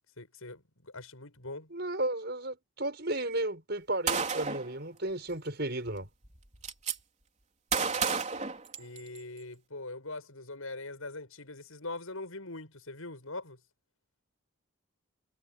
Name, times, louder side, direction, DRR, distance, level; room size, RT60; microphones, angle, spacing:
voice 1, 0.2-1.7 8.8-13.6, left 2 dB, 80° left, 7.4 m, -42 dB
voice 2, 1.7-6.1, right 1 dB, 50° right, 6.6 m, -33 dB
Gunshot gunfire, 4.1-4.7 5.9-6.0 6.2-7.0 7.7-9.2, right 5 dB, 35° right, 4.2 m, -31 dB
head